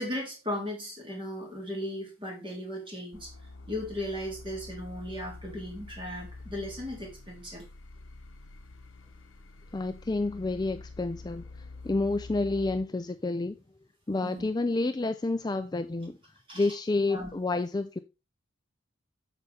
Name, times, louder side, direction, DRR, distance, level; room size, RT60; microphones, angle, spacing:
voice 1, 0.0-3.3 3.7-7.6 14.2-14.5 16.5-16.7 17.1-17.3, left 1 dB, 25° right, 3.3 m, -36 dB
sound 1, 3.1-12.8, left 3 dB, 70° left, 0.8 m, -47 dB
voice 2, 9.7-13.6 14.1-16.2 16.5-18.0, left 2 dB, 20° left, 0.4 m, -29 dB
8.3 x 6.9 x 3.3 m
head